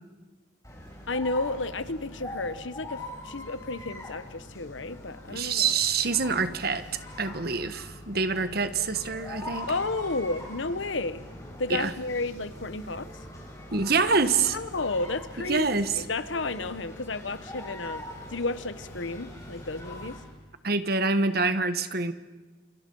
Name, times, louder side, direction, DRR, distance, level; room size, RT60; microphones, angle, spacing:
sound 1, 0.6-20.3, left 1 dB, 15° left, 5.6 m, -43 dB
voice 1, 1.1-5.7 8.1-8.3 9.7-11.2 11.6-13.1 14.4-15.7 15.9-20.2, left 3 dB, 85° left, 13 dB, 1.2 m, -32 dB
voice 2, 5.3-6.8 7.2-9.7 11.7-11.9 13.7-14.6 15.5-15.9 20.6-22.1, right 4 dB, 55° right, 11 dB, 1.4 m, -26 dB
29.0 x 28.5 x 5.6 m, 1.2 s
head